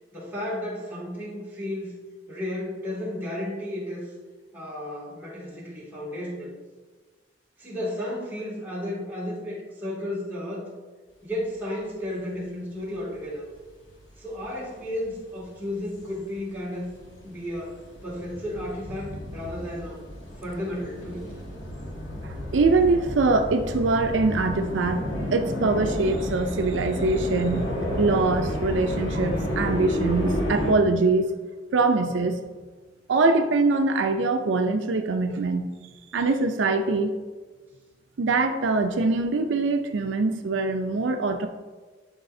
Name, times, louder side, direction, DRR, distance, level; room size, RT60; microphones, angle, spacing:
voice 1, 0.1-1.9 2.3-4.1 4.5-6.5 7.6-10.7 11.2-13.5 14.2-16.9 17.2-20.0 20.4-21.3, left 1 dB, 10° right, -8 dB, 2.3 m, -33 dB
sound 1, 14.1-14.4 15.0-30.7, equal, 85° left, 1.5 m, -31 dB
voice 2, 22.5-27.7 28.0-31.3 31.7-32.4 33.1-35.8 36.1-37.1 38.2-41.5, right 3 dB, 80° right, 6 dB, 0.5 m, -23 dB
11.5 x 4.8 x 2.7 m, 1.3 s
head